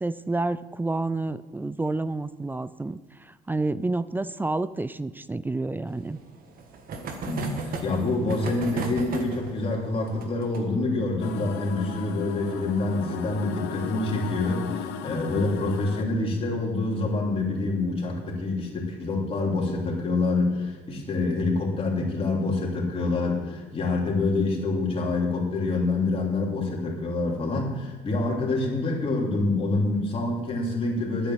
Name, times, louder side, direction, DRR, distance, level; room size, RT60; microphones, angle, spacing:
voice 1, 0.0-6.2, right 2 dB, 10° right, 15 dB, 0.4 m, -29 dB
sound 1, 5.9-15.1 15.3-15.4 15.7-15.8 16.1-16.2 17.5-17.8 18.5-18.9, right 4 dB, 60° right, 1.7 m, -38 dB
voice 2, 7.2-31.3, left 2 dB, 35° left, -2 dB, 3.4 m, -26 dB
sound 2, 11.2-16.0, left 8 dB, 90° left, 0.9 m, -36 dB
10.0 x 8.8 x 7.5 m, 1.3 s
cardioid pair, 110°, 17 cm